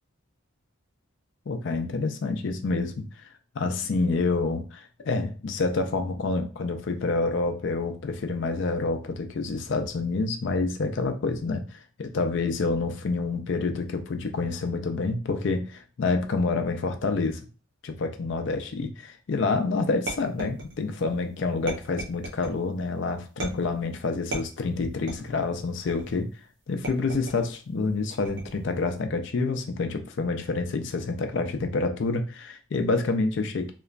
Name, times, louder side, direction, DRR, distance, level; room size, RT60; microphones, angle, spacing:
voice 1, 1.5-3.0 3.6-11.6 12.0-17.4 17.8-26.3 26.7-33.7, left 3 dB, 55° left, 6 dB, 0.4 m, -28 dB
sound 1, 20.1-21.0 21.7-22.6 23.4-23.8 24.3-25.4 25.9-26.3 26.8-27.5 28.2-28.7, right 2 dB, 55° right, 0.8 m, -36 dB
2.9 x 2.2 x 2.4 m, 0.35 s
head